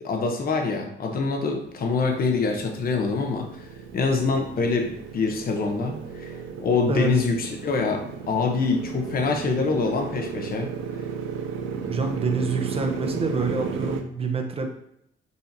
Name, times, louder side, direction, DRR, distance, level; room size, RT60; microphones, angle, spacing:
voice 1, 0.0-3.7 3.9-10.7, left 4 dB, 50° left, 3 dB, 0.8 m, -25 dB
Motorcycle, 1.4-14.0, right 6 dB, 85° right, 0.6 m, -34 dB
voice 2, 11.9-14.7, right 4 dB, 30° right, 4 dB, 0.8 m, -27 dB
6.7 x 2.7 x 2.7 m, 0.75 s
cardioid pair, 90°, 20 cm